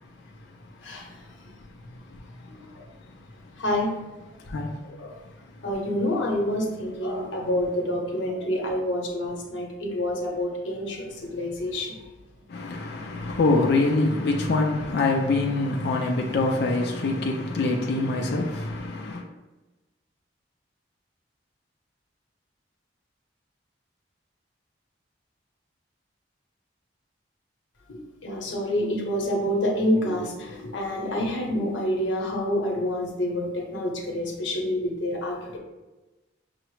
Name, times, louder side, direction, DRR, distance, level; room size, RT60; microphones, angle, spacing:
voice 1, 0.8-1.1 1.4-1.5 2.5-2.8 3.6-3.9 5.0-5.1 5.6-12.0 27.9-35.6, left 1 dB, 85° left, 0.8 m, -28 dB
voice 2, 12.5-19.2, left 2 dB, 60° left, 0.4 m, -24 dB
5.6 x 2.0 x 3.1 m
head